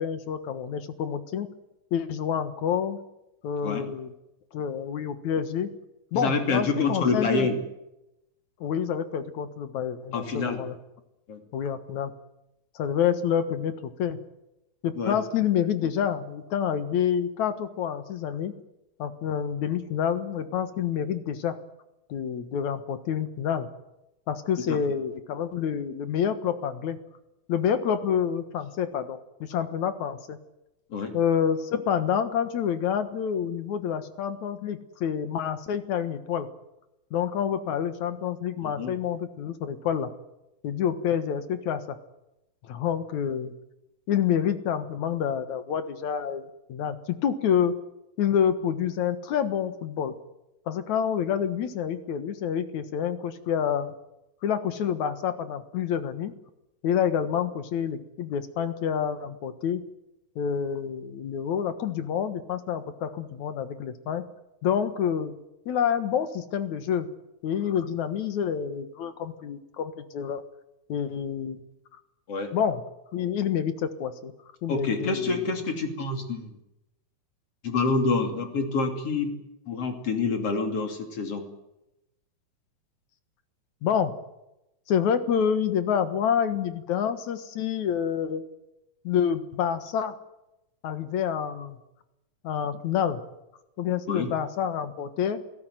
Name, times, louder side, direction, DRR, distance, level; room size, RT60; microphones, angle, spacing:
voice 1, 0.0-1.5 1.9-3.0 3.4-4.1 4.5-5.7 6.1-7.5 8.6-10.7 11.5-12.1 12.8-14.2 14.8-18.5 19.0-21.6 22.1-23.7 24.3-27.0 27.5-30.4 31.1-36.5 37.1-40.1 40.6-42.0 42.6-43.5 44.1-47.0 47.2-47.7 48.2-50.1 50.7-53.9 54.4-56.3 56.8-59.8 60.4-64.2 64.6-65.3 65.7-67.1 67.4-70.4 70.9-71.6 72.5-72.8 73.1-74.3 74.6-75.4 83.8-84.1 84.9-88.4 89.0-90.2 90.8-91.8 92.4-93.2 93.8-95.4, left 8 dB, 65° left, 10 dB, 2.7 m, -28 dB
voice 2, 6.1-7.6 10.1-10.6 11.3-11.4 15.0-15.2 24.7-24.8 30.9-31.1 38.6-38.9 72.3-72.5 74.7-76.6 77.6-79.3 79.7-81.4 94.1-94.3, left 4 dB, 50° left, 5 dB, 3.7 m, -27 dB
29.0 x 16.5 x 9.2 m, 0.92 s
omnidirectional pair, 3.7 m